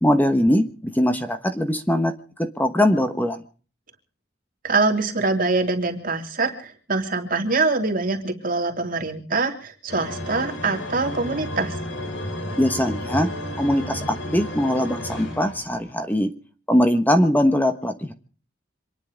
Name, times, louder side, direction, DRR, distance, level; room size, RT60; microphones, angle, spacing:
voice 1, 0.0-2.1 2.4-3.4 12.6-13.3 13.6-16.3 16.7-18.1, left 1 dB, 10° left, 8 dB, 1.2 m, -21 dB
voice 2, 4.6-11.8, right 3 dB, 50° right, 3 dB, 3.0 m, -24 dB
sound 1, 9.9-15.9, left 1 dB, 85° left, 4.5 m, -32 dB
26.5 x 10.5 x 5.1 m, 0.40 s
head